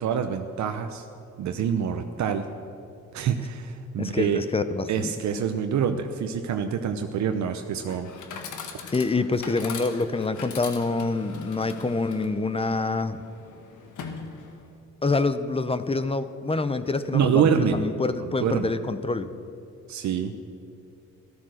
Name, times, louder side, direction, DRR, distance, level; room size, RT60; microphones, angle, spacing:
voice 1, 0.0-1.1 1.4-2.5 3.1-4.4 4.9-8.1 17.1-17.8 18.2-18.7 19.9-20.4, right 7 dB, 70° right, 6 dB, 0.8 m, -26 dB
voice 2, 4.0-5.1 8.9-13.2 15.0-19.3, left 3 dB, 20° left, 12 dB, 0.8 m, -26 dB
Chatter / Coin (dropping), 7.7-14.8, left 6 dB, 75° left, 1.6 m, -41 dB
13.5 x 12.5 x 6.5 m, 2.8 s
cardioid pair, 90°, 30 cm